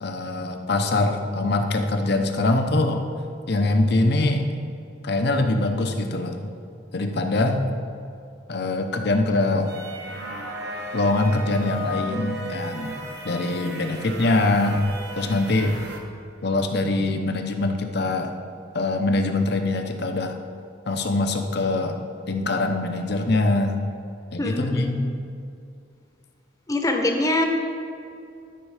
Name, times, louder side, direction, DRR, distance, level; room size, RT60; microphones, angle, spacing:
voice 1, 0.0-3.1 3.5-4.5 5.0-6.4 6.9-7.6 8.5-9.7 10.9-13.0 13.2-14.9 15.2-15.7 16.4-18.3 18.7-20.4 20.9-22.0 22.3-23.8 24.3-25.0, left 2 dB, 60° left, 5 dB, 0.8 m, -23 dB
sound 1, 9.7-16.0, right 1 dB, 60° right, 1.1 m, -35 dB
voice 2, 24.4-25.0 26.7-27.5, left 1 dB, 20° left, 3 dB, 0.9 m, -23 dB
12.0 x 5.4 x 4.9 m, 2.5 s
head